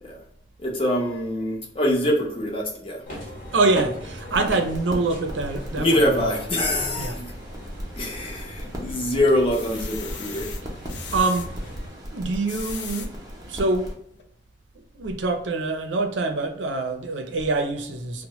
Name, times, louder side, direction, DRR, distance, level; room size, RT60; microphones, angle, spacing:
voice 1, 0.6-3.0 5.8-7.3 8.0-10.5, left 1 dB, 30° left, 0.7 m, -24 dB
sound 1, 3.1-11.9, equal, 50° left, 1.0 m, -38 dB
voice 2, 3.5-6.4 7.0-7.2 11.1-11.5 12.1-13.1 13.4-13.9 14.9-18.3, right 3 dB, 85° right, 0.5 m, -25 dB
sound 2, 4.3-13.9, equal, 20° right, 0.6 m, -37 dB
sound 3, 8.2-8.8 9.3-11.5 12.2-13.1 13.7-13.8 14.1-14.2, left 6 dB, 70° left, 0.5 m, -39 dB
2.9 x 2.1 x 2.9 m
head